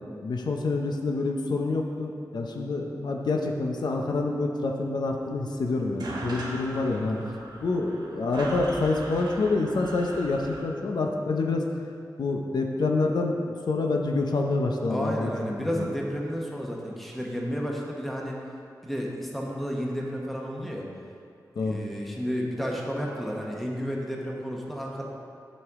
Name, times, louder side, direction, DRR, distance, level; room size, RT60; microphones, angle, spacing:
voice 1, 0.0-7.2 7.6-11.6 12.2-15.3 15.6-15.9 21.6-21.8, left 3 dB, 85° left, 2 dB, 0.6 m, -27 dB
sound 1, 5.5-5.6 5.8-10.6, right 1 dB, 80° right, 1.3 m, -38 dB
voice 2, 14.9-18.4 18.8-20.9 21.6-25.0, equal, ahead, -2 dB, 1.0 m, -32 dB
9.7 x 5.3 x 3.6 m, 2.4 s
wide cardioid pair, 115°, 7 cm